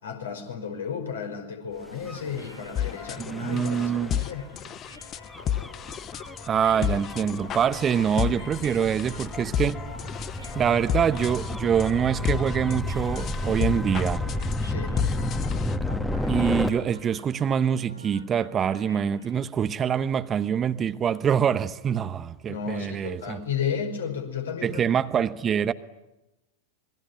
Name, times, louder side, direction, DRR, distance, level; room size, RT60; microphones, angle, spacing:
voice 1, 0.0-4.5 14.7-15.0 22.5-24.8, left 7 dB, 65° left, 5.4 m, -33 dB
sound 1, 1.6-19.5, equal, 90° left, 3.4 m, -50 dB
Gull seagull / Waves surf / Siren, 2.0-16.7, left 2 dB, 5° left, 1.7 m, -32 dB
sound 2, 2.8-15.8, left 10 dB, 30° left, 1.0 m, -32 dB
voice 2, 3.2-4.2 6.5-9.8 10.5-14.2 16.3-23.4 24.6-25.7, right 8 dB, 25° right, 1.0 m, -25 dB
27.0 x 22.5 x 9.3 m
figure-of-eight pair, 90°, 0 cm